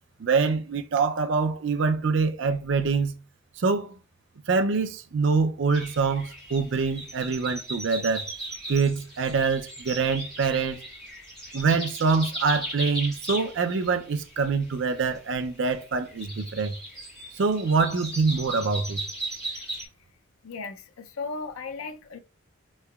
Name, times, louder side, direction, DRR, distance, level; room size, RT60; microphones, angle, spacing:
voice 1, 0.2-3.2 3.6-3.9 4.5-8.3 8.7-10.8 11.5-16.7 17.3-19.0, right 4 dB, 60° right, 0.4 m, -25 dB
sound 1, 5.7-19.9, right 1 dB, ahead, 1.6 m, -38 dB
voice 2, 20.4-22.2, left 4 dB, 80° left, 0.5 m, -36 dB
3.7 x 3.1 x 2.3 m
head